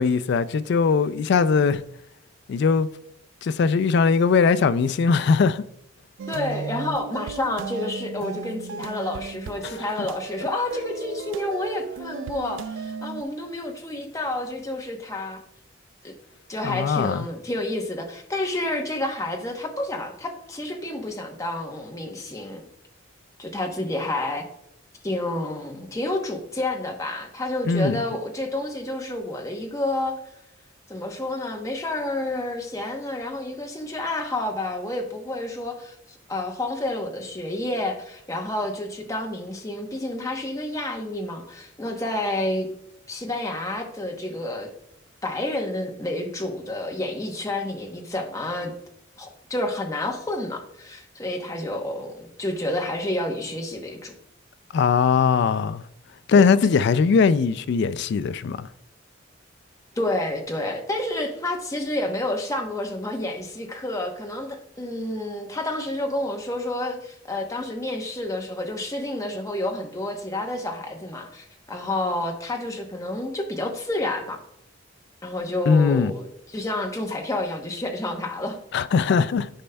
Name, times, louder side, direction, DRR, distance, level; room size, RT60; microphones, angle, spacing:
voice 1, 0.0-1.8 2.5-2.9 3.4-5.6 9.6-9.7 16.6-17.3 27.7-28.0 54.7-55.8 56.3-58.7 75.7-76.1 78.7-79.5, left 5 dB, 60° left, 0.3 m, -20 dB
sound 1, 6.2-13.2, right 6 dB, 70° right, 0.3 m, -35 dB
voice 2, 6.3-15.4 16.0-16.1 16.5-22.7 23.4-24.5 25.0-30.2 30.9-42.7 43.1-44.7 45.2-48.7 49.2-54.1 56.3-56.5 60.0-74.4 75.2-78.6, left 1 dB, 15° left, 0.9 m, -29 dB
10.0 x 5.2 x 2.2 m
head